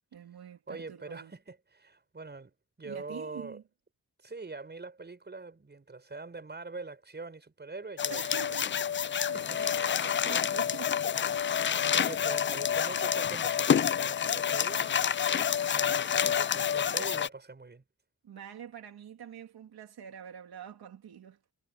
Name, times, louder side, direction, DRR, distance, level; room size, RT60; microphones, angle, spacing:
voice 1, 0.1-1.3 2.8-3.6 8.1-8.7 9.0-11.0 11.3-11.7 18.2-21.4, right 8 dB, 85° right, 3.2 m, -46 dB
voice 2, 0.7-3.6 4.2-8.2 8.5-8.6 9.3-9.8 11.3-17.8, right 3 dB, 30° right, 5.8 m, -44 dB
sound 1, 8.0-17.3, left 8 dB, 35° left, 0.4 m, -28 dB
wide cardioid pair, 120°, 37 cm